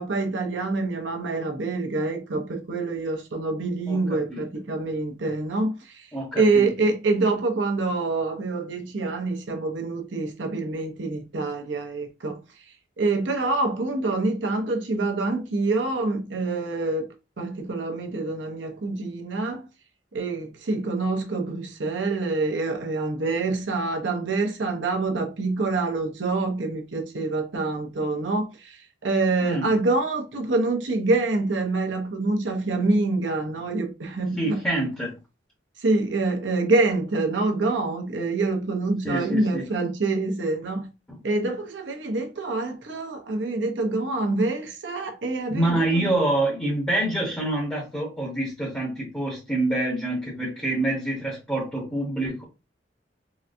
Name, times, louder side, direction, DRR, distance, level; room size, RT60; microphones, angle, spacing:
voice 1, 0.0-6.1 6.4-12.4 13.0-17.1 17.4-19.7 20.1-34.6 35.8-40.9 41.2-46.1, right 3 dB, 80° right, 0.7 m, -26 dB
voice 2, 3.9-4.4 6.1-6.7 29.4-29.7 34.4-35.1 39.0-39.7 45.5-52.4, right 1 dB, 10° left, 1.0 m, -26 dB
3.9 x 2.2 x 2.5 m
head